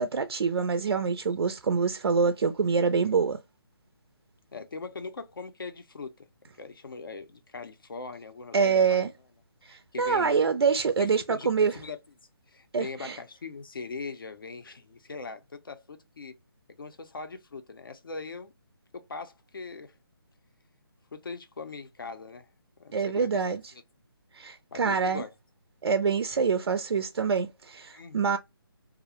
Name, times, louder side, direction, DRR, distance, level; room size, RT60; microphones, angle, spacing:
voice 1, 0.0-3.4 8.5-9.1 9.7-11.7 12.7-13.2 22.9-23.6 24.3-25.2 25.8-28.4, right 5 dB, 85° right, 0.4 m, -25 dB
voice 2, 4.5-6.3 6.6-9.1 9.7-10.4 11.0-12.0 12.5-16.3 16.8-18.5 18.9-20.0 21.1-22.5 22.8-23.4 23.7-23.8 24.7-25.3 27.9-28.3, left 4 dB, 60° left, 0.6 m, -41 dB
2.4 x 2.1 x 2.7 m
hypercardioid pair, 180°, 13 cm